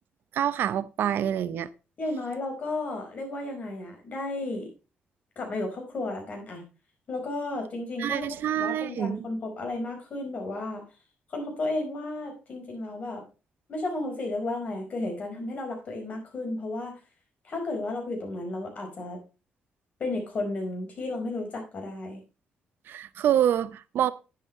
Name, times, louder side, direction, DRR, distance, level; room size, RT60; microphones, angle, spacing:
voice 1, 0.3-1.7 8.0-9.2 22.9-24.1, right 10 dB, 65° right, 0.7 m, -26 dB
voice 2, 2.0-4.7 5.3-6.7 7.1-10.8 11.3-13.2 13.7-16.9 17.4-19.2 20.0-22.2, left 2 dB, 40° left, 4.8 m, -33 dB
11.0 x 10.0 x 3.1 m
cardioid pair, 165°, 4 cm